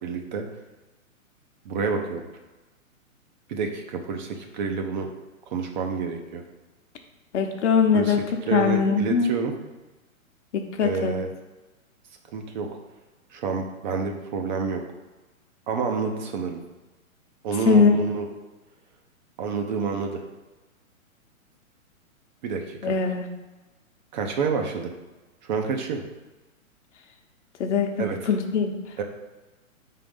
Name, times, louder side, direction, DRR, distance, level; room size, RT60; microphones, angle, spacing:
voice 1, 0.0-0.4 1.7-2.3 3.5-5.1 5.5-6.4 7.9-9.6 10.8-11.3 12.3-12.7 13.3-14.8 15.7-16.6 17.4-18.3 19.4-20.2 22.4-22.9 24.1-24.9 25.4-26.0 28.0-28.3 29.0-29.1, right 5 dB, 35° right, 3 dB, 0.6 m, -28 dB
voice 2, 7.3-8.2 8.5-9.3 10.8-11.1 17.7-17.9 22.8-23.3 27.6-28.7, left 6 dB, 55° left, 4 dB, 0.9 m, -21 dB
4.9 x 3.8 x 5.2 m, 1.2 s
hypercardioid pair, 120°, 42 cm